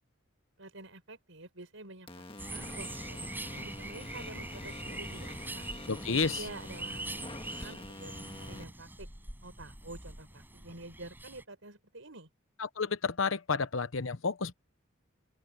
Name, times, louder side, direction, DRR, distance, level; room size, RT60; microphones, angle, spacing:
voice 1, 0.6-5.7 6.0-9.1 9.4-12.3, right 2 dB, 75° right, 5.6 m, -49 dB
sound 1, 2.1-8.6, left 2 dB, 25° left, 1.6 m, -46 dB
sound 2, 2.4-11.4, right 2 dB, 10° right, 6.2 m, -43 dB
voice 2, 5.9-6.4 12.6-14.5, left 4 dB, 75° left, 1.0 m, -31 dB
open air
head